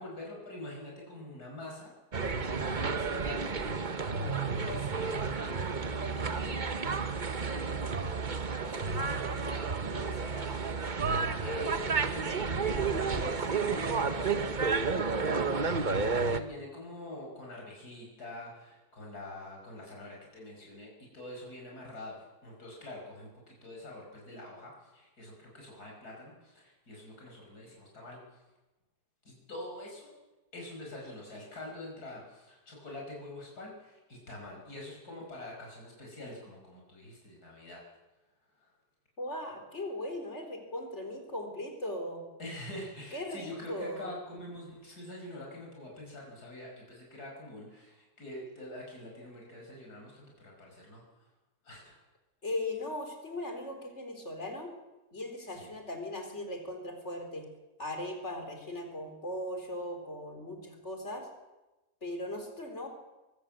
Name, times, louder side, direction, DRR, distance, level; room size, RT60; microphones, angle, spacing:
voice 1, 0.0-1.9 2.3-6.7 7.0-28.2 29.2-30.1 30.5-37.8 38.6-38.7 42.4-51.0 51.6-52.0 55.5-55.7, left 1 dB, 70° left, -1 dB, 6.2 m, -45 dB
sound 1, 2.1-16.4, right 4 dB, 35° right, 1.0 m, -31 dB
voice 2, 39.2-42.2 43.1-44.1 52.4-54.7 55.1-57.5 57.8-61.3 62.0-62.9, left 1 dB, 45° left, 4 dB, 4.2 m, -38 dB
23.0 x 16.5 x 7.7 m, 1.1 s
omnidirectional pair, 1.7 m